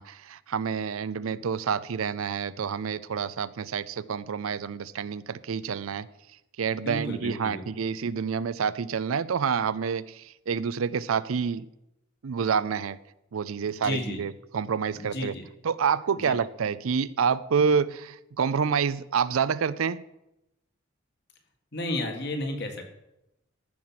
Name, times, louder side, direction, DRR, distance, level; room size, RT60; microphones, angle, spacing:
voice 1, 0.0-6.1 6.6-11.7 12.2-13.0 13.3-15.3 15.6-20.0, right 6 dB, 90° right, 17 dB, 0.5 m, -28 dB
voice 2, 6.9-7.7 13.6-14.2 14.9-15.4 16.2-16.4 21.7-22.9, left 1 dB, 55° left, 4 dB, 1.8 m, -33 dB
14.0 x 5.9 x 5.8 m, 0.89 s
head